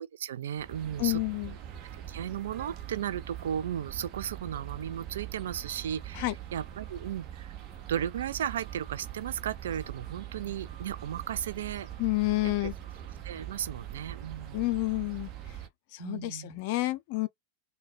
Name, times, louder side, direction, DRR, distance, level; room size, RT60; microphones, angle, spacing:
voice 1, 0.0-1.2 1.9-7.6 7.9-11.9 12.4-12.7 13.2-14.6 16.0-16.6, right 9 dB, 60° right, 0.4 m, -35 dB
sound 1, 0.6-15.7, right 11 dB, 35° right, 1.0 m, -42 dB
voice 2, 1.0-1.6 6.1-6.3 12.0-12.7 14.5-15.3 15.9-17.3, left 20 dB, 45° left, 0.6 m, -29 dB
3.9 x 2.3 x 4.3 m
figure-of-eight pair, 90°, 0 cm